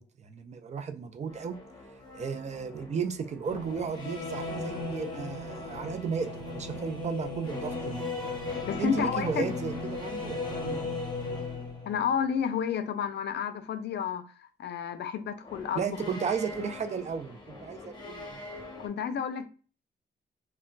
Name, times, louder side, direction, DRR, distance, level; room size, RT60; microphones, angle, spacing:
voice 1, 0.0-1.6 2.1-8.3 8.8-10.8 15.8-18.4, right 6 dB, 40° right, 0.4 m, -34 dB
sound 1, 1.3-12.3 15.4-18.9, left 3 dB, 25° left, 0.8 m, -38 dB
voice 2, 8.7-9.5 11.9-14.2 14.6-16.0 18.8-19.5, left 7 dB, 70° left, 0.4 m, -30 dB
2.1 x 2.1 x 3.7 m
wide cardioid pair, 140°, 18 cm